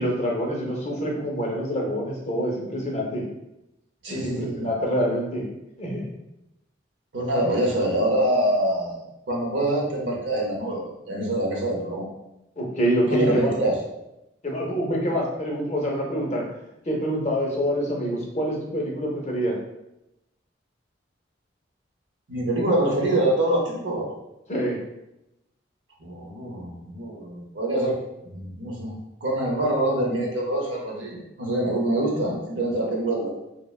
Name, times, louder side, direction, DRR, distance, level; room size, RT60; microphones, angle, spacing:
voice 1, 0.0-3.2 4.1-5.5 5.8-6.0 12.6-13.5 14.4-16.4 16.9-19.6 24.5-24.8, equal, 35° left, -2 dB, 0.5 m, -26 dB
voice 2, 4.0-4.7 7.1-12.1 13.1-13.7 22.3-24.1 26.0-28.0 28.3-28.9 29.2-33.3, right 1 dB, 80° right, -1 dB, 0.7 m, -25 dB
3.1 x 2.1 x 2.3 m, 0.87 s
head